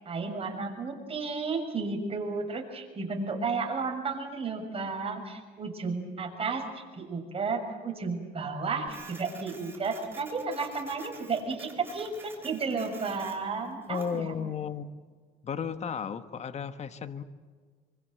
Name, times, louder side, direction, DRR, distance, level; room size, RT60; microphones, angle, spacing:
voice 1, 0.0-14.3, right 4 dB, 35° right, 3 dB, 6.5 m, -33 dB
Printer, 8.9-14.2, right 3 dB, 15° right, 4.9 m, -49 dB
voice 2, 13.9-14.9 15.4-17.2, left 7 dB, 40° left, 10 dB, 1.5 m, -34 dB
27.5 x 24.0 x 7.9 m, 1.5 s
cardioid pair, 110°, 17 cm